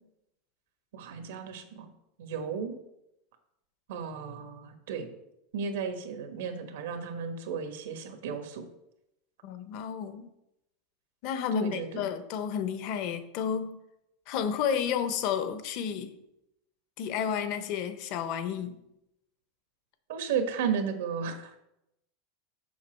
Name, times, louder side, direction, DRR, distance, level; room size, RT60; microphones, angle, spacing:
voice 1, 0.9-1.9 2.2-2.8 3.9-5.1 5.5-8.7 11.5-12.0 20.1-21.6, right 6 dB, 80° right, 6 dB, 1.4 m, -34 dB
voice 2, 9.4-10.3 11.2-13.8 14.3-16.1 17.0-18.8, left 7 dB, 45° left, 10 dB, 0.8 m, -31 dB
7.1 x 6.0 x 4.5 m, 0.84 s
supercardioid pair, 155°, 0 cm